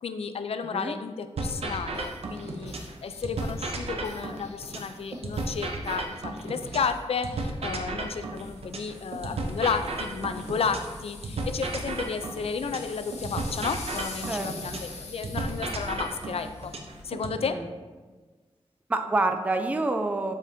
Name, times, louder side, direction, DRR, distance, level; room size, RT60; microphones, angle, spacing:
voice 1, 0.0-2.7 3.0-16.7 17.0-17.6, left 5 dB, 65° left, 9 dB, 0.4 m, -32 dB
sound 1, 1.4-2.9 3.2-6.9 7.2-10.9 11.2-14.9 15.2-17.4, right 2 dB, 65° right, 0.7 m, -33 dB
sound 2, 1.6-17.1, left 3 dB, 85° left, 0.9 m, -46 dB
voice 2, 18.9-20.3, right 2 dB, 15° right, 6 dB, 0.3 m, -27 dB
7.5 x 5.0 x 2.6 m, 1.3 s
wide cardioid pair, 140°, 11 cm